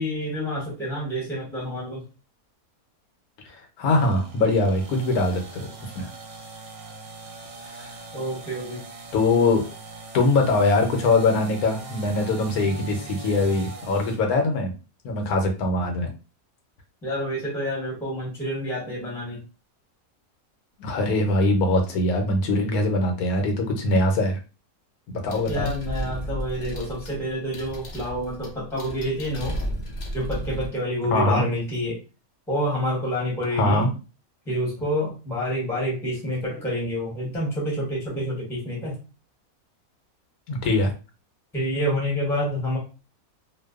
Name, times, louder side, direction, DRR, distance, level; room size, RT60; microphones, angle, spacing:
voice 1, 0.0-2.0 8.1-8.8 17.0-19.4 25.5-29.6 30.1-32.0 32.5-33.9 34.5-39.0 41.5-42.8, equal, ahead, -3 dB, 0.7 m, -28 dB
voice 2, 3.5-5.7 5.9-6.1 7.7-8.0 9.1-9.6 10.1-14.7 15.0-16.1 20.8-24.4 25.1-25.7 31.1-31.4 33.5-33.9 40.5-40.9, left 2 dB, 85° left, 3 dB, 1.1 m, -22 dB
sound 1, 4.0-14.2, right 3 dB, 70° right, 0.9 m, -41 dB
sound 2, 25.3-30.7, equal, 65° left, 0.8 m, -33 dB
2.5 x 2.2 x 2.3 m, 0.32 s
omnidirectional pair, 1.5 m